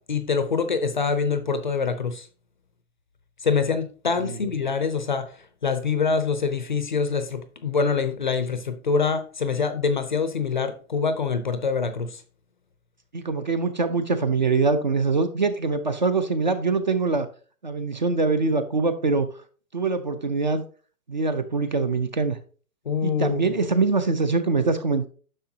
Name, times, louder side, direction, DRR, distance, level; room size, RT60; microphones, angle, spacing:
voice 1, 0.1-2.3 3.4-5.3 5.6-12.2 22.9-23.4, left 5 dB, 35° left, 10 dB, 0.5 m, -25 dB
voice 2, 13.1-17.3 17.6-19.3 19.7-20.6 21.1-22.4 23.0-25.1, right 4 dB, 35° right, 11 dB, 0.5 m, -23 dB
10.0 x 6.5 x 2.8 m, 0.40 s
hypercardioid pair, 170°, 43 cm